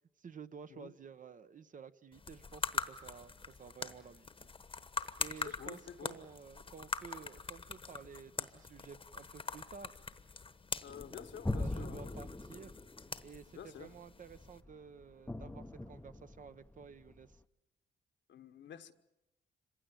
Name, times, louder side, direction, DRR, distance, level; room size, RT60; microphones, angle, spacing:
voice 1, 0.2-4.5 5.2-10.0 11.5-12.8 13.2-17.4, right 6 dB, 40° right, 0.9 m, -52 dB
sound 1, 2.1-14.6, left 4 dB, 25° left, 1.1 m, -43 dB
voice 2, 5.4-6.2 10.8-12.3 13.5-13.9 18.3-18.9, left 9 dB, 65° left, 1.3 m, -49 dB
sound 2, 10.9-17.4, left 2 dB, 10° left, 0.8 m, -42 dB
26.0 x 16.0 x 9.0 m
cardioid pair, 90°, 20 cm